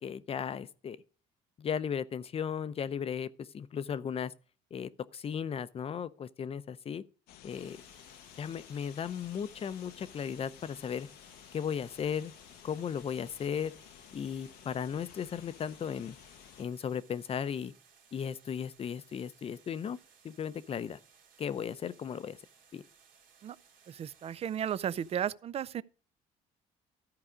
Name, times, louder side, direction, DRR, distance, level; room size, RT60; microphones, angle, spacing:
voice 1, 0.0-1.0 1.6-4.3 4.7-7.0 7.4-7.8 8.4-11.1 11.5-12.3 12.6-13.7 14.1-16.2 16.6-17.7 18.1-20.0 20.2-21.0 21.4-22.4 22.7-22.8, left 7 dB, 40° left, 0.6 m, -36 dB
sound 1, 7.3-16.6, left 11 dB, 80° left, 0.7 m, -54 dB
sound 2, 7.5-25.2, right 6 dB, 65° right, 2.2 m, -63 dB
voice 2, 23.9-25.8, right 9 dB, 40° right, 0.4 m, -34 dB
13.5 x 4.8 x 4.9 m
supercardioid pair, 90°, 16 cm